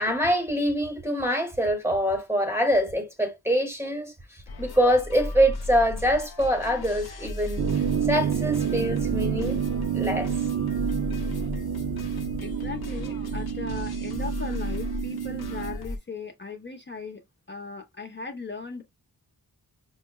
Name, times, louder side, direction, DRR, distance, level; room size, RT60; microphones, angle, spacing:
voice 1, 0.0-7.7 8.1-9.6 9.9-10.3, equal, 5° right, 0.8 m, -25 dB
sound 1, 4.5-16.0, left 2 dB, 80° left, 0.7 m, -35 dB
sound 2, 7.6-15.8, right 9 dB, 50° right, 0.4 m, -29 dB
voice 2, 12.4-17.2 17.5-18.8, left 4 dB, 30° left, 0.6 m, -38 dB
5.5 x 2.0 x 2.2 m
wide cardioid pair, 110°, 37 cm